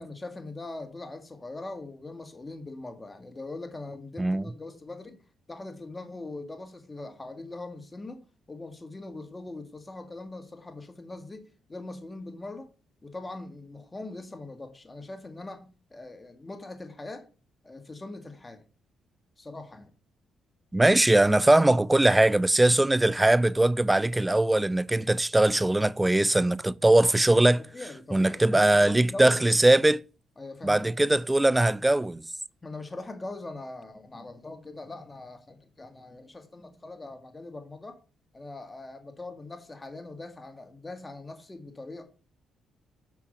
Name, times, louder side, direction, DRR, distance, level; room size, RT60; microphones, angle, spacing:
voice 1, 0.0-5.2 5.5-8.2 8.5-12.7 13.0-17.2 17.6-18.6 19.4-19.9 27.7-29.4 30.4-30.9 32.6-38.0 38.3-42.0, left 2 dB, 20° left, 2.1 m, -41 dB
voice 2, 20.7-27.6 28.1-30.0 30.6-32.2, right 1 dB, 10° right, 0.4 m, -21 dB
8.6 x 5.8 x 5.7 m
cardioid pair, 90°, 0 cm